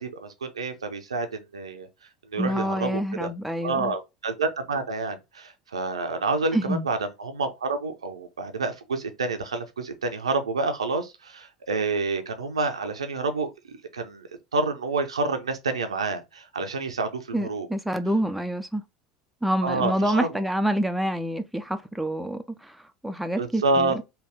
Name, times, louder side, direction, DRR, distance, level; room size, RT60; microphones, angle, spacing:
voice 1, 0.0-1.9 2.3-3.3 3.6-17.7 19.6-20.3 23.4-24.0, right 3 dB, 75° right, 0.5 m, -28 dB
voice 2, 2.4-3.9 6.5-6.9 17.3-18.8 19.4-24.0, right 1 dB, ahead, 0.4 m, -27 dB
3.3 x 2.3 x 3.5 m
figure-of-eight pair, 75°, 3 cm